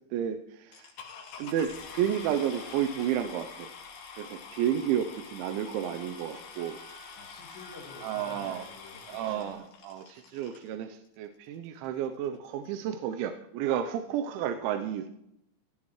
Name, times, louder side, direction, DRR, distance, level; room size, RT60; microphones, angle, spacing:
voice 1, 0.1-0.9 1.4-3.7 4.2-6.8 8.0-8.6 9.1-15.1, right 10 dB, 85° right, 7 dB, 3.1 m, -31 dB
sound 1, 0.7-10.7 11.5-11.6 12.1-12.2 12.4-12.7, left 5 dB, 85° left, 4.8 m, -46 dB
Wind instrument woodwind instrument, 5.8-8.5, left 1 dB, 40° right, 3.0 m, -54 dB
voice 2, 7.2-9.5, left 3 dB, 70° left, -1 dB, 5.0 m, -49 dB
17.0 x 15.0 x 3.1 m, 0.79 s
omnidirectional pair, 5.3 m